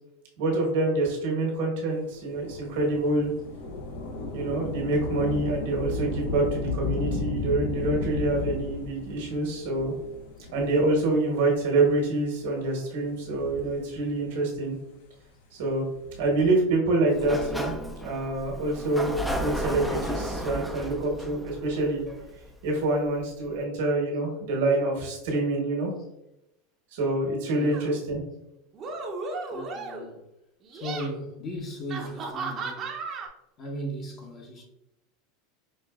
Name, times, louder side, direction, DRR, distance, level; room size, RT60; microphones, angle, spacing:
voice 1, 0.4-3.3 4.3-9.9 10.5-14.8 15.6-15.8 16.2-17.7 18.0-22.0 22.6-25.9 26.9-28.2, right 2 dB, 70° right, 1.3 m, -26 dB
Thunder / Rain, 2.3-11.3 12.0-12.1 13.1-14.3 15.9-16.6, left 3 dB, 70° left, 0.8 m, -34 dB
Sliding door, 17.1-22.8, equal, 5° left, 0.5 m, -33 dB
voice 2, 27.5-27.9 29.5-30.3 30.7-32.9 33.6-34.6, equal, 40° left, 1.0 m, -37 dB
sound 1, 27.7-28.0 28.7-30.1 30.6-31.1 31.9-33.3, right 4 dB, 40° right, 0.7 m, -35 dB
5.2 x 2.6 x 2.4 m
hypercardioid pair, 105°, 0 cm